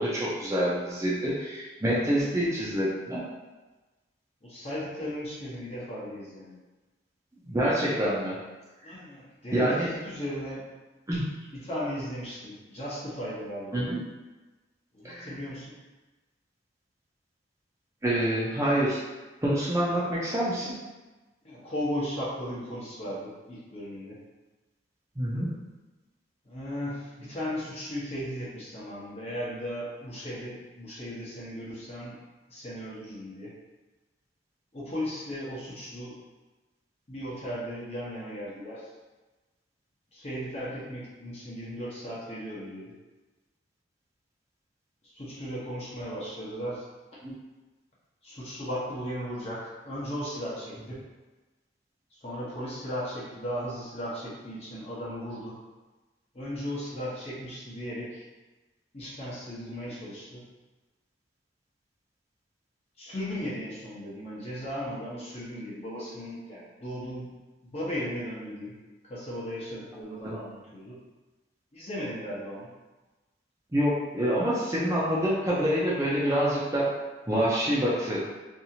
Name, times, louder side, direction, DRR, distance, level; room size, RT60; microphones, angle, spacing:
voice 1, 0.0-3.2 7.5-8.3 8.8-8.9 9.5-9.9 11.1-11.3 13.7-14.0 15.0-15.3 18.0-19.0 19.4-20.7 25.2-25.5 47.2-47.3 70.2-70.4 73.7-76.9 77.3-78.2, equal, 15° right, -7 dB, 0.5 m, -26 dB
voice 2, 4.4-6.6 8.8-10.6 11.6-13.9 14.9-15.7 21.4-24.2 26.4-32.2 32.5-33.5 34.7-36.1 37.1-38.9 40.1-42.9 45.1-46.8 48.2-51.0 52.2-55.6 56.3-58.2 58.9-60.4 63.0-67.3 67.6-68.7 69.0-71.0 71.7-72.7, equal, 35° left, -7 dB, 0.8 m, -36 dB
2.7 x 2.4 x 2.8 m, 1.2 s
head